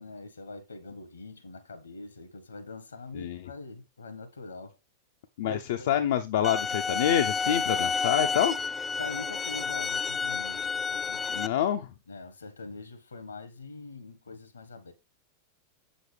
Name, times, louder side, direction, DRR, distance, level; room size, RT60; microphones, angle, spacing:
voice 1, 0.0-4.8 5.4-6.0 9.0-11.5 12.1-14.9, left 3 dB, 75° left, 1.6 m, -43 dB
voice 2, 5.4-8.6 11.3-11.9, left 10 dB, 55° left, 0.7 m, -27 dB
sound 1, 6.4-11.5, left 5 dB, 15° left, 0.4 m, -30 dB
8.0 x 7.3 x 3.4 m
figure-of-eight pair, 90°, 0 cm